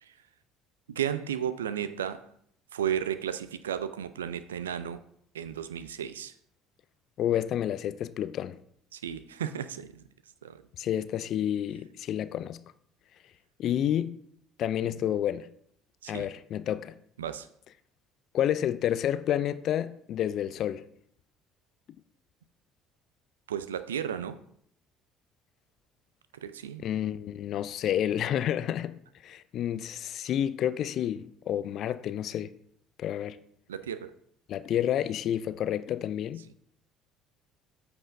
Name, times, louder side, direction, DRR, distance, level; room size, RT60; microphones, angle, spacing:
voice 1, 0.9-2.3 2.7-5.0 5.3-6.3 8.9-10.0 10.4-10.6 14.8-15.0 16.0-16.3 17.2-17.5 23.5-24.4 26.3-26.9 33.7-34.1, right 9 dB, 90° right, 0.3 m, -34 dB
voice 2, 7.2-8.6 10.8-12.6 13.6-14.2 14.6-15.5 16.1-17.0 18.3-20.8 26.8-29.0 29.2-32.5 33.0-33.4 34.5-36.4, left 10 dB, 55° left, 0.3 m, -29 dB
8.6 x 5.9 x 2.6 m
hypercardioid pair, 60°, 0 cm